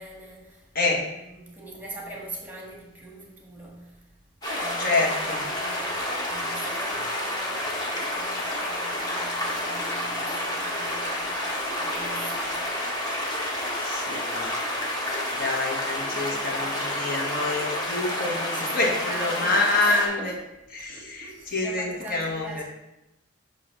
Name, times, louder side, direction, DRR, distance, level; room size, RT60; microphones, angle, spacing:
voice 1, 0.0-4.1 4.5-12.7 14.8-15.4 16.1-17.1 18.5-19.8 20.1-20.3 20.9-22.6, right 1 dB, 10° right, 1.7 m, -42 dB
sound 1, 4.4-20.1, left 1 dB, 20° left, 1.5 m, -29 dB
voice 2, 4.8-5.5 13.8-14.5 15.3-20.3 20.7-22.6, left 3 dB, 50° left, 1.6 m, -27 dB
8.4 x 3.0 x 6.2 m
head